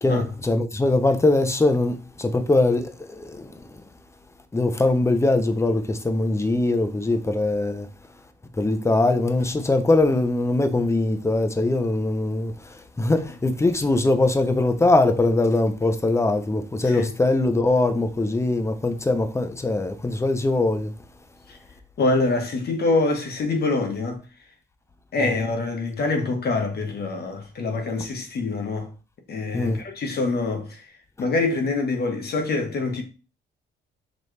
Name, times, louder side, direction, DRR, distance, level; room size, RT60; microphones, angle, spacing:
voice 1, 0.0-3.5 4.5-7.9 8.6-20.9 25.2-25.3 29.5-29.8, left 2 dB, 15° left, 0.6 m, -22 dB
voice 2, 22.0-24.2 25.1-28.9 29.3-30.8 31.2-33.0, left 3 dB, 55° left, 1.1 m, -25 dB
4.1 x 3.0 x 3.3 m
cardioid pair, 90°, 20 cm